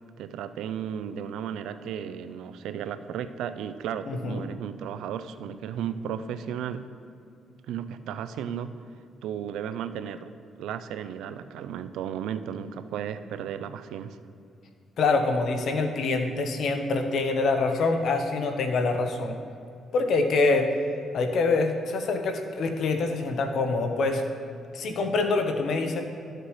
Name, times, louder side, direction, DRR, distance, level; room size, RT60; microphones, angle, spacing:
voice 1, 0.2-6.9 7.7-8.7 9.2-10.3 10.6-14.2, right 8 dB, 85° right, 12 dB, 0.4 m, -34 dB
voice 2, 4.1-4.4 15.0-19.4 19.9-20.7 21.1-24.2 24.7-26.0, left 3 dB, 65° left, 5 dB, 0.9 m, -25 dB
12.5 x 6.6 x 3.1 m, 2.5 s
cardioid pair, 90°, 0 cm